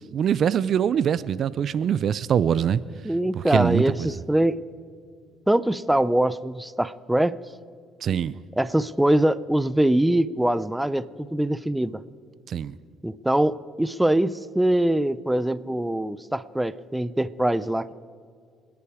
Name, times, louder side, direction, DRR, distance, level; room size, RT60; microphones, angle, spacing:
voice 1, 0.1-2.8 3.4-4.1 8.0-8.3 12.5-12.8, right 8 dB, 55° right, 0.5 m, -23 dB
voice 2, 3.0-4.6 5.5-7.4 8.6-12.0 13.0-17.9, right 1 dB, 5° right, 0.5 m, -23 dB
26.5 x 10.5 x 4.9 m
cardioid pair, 95°, 0 cm